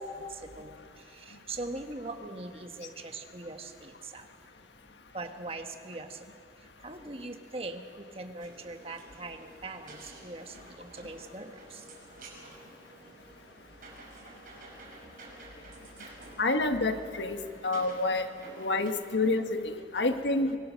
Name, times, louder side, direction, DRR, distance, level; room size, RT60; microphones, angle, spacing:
voice 1, 0.3-4.3 5.1-6.3 6.5-11.9 15.9-16.0 19.9-20.0, right 2 dB, 35° right, 5 dB, 1.4 m, -42 dB
sound 1, 8.4-18.9, right 2 dB, 50° right, 5.8 m, -51 dB
voice 2, 16.4-17.4 17.6-18.3 18.6-20.6, left 2 dB, 90° left, 6 dB, 1.5 m, -28 dB
23.5 x 22.0 x 6.5 m, 2.4 s
head